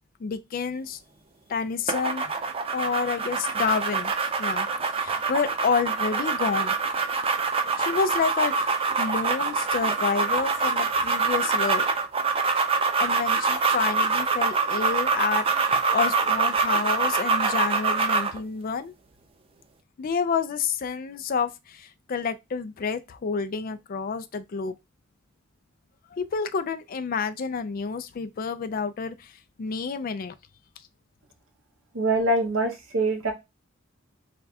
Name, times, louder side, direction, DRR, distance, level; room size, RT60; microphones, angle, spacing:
voice 1, 0.2-1.0 1.5-2.3 2.7-4.1 4.4-4.7 4.9-6.7 7.8-11.8 13.0-18.9 20.0-24.7 26.1-29.3 29.6-30.3, left 5 dB, 45° left, 0.4 m, -29 dB
sound 1, 1.9-18.4, right 4 dB, 25° right, 0.4 m, -25 dB
voice 2, 31.9-33.3, right 2 dB, 75° right, 1.0 m, -24 dB
3.4 x 2.3 x 4.1 m
head